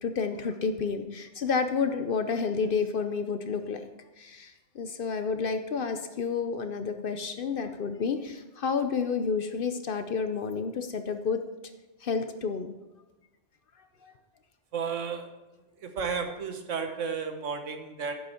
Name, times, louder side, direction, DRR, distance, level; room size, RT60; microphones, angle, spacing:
voice 1, 0.0-3.8 4.2-11.4 12.0-12.7 14.0-14.1, left 5 dB, 55° left, 8 dB, 0.7 m, -30 dB
voice 2, 14.7-15.3 15.8-18.1, right 6 dB, 80° right, 6 dB, 1.4 m, -32 dB
10.5 x 7.9 x 4.3 m, 1.1 s
omnidirectional pair, 1.3 m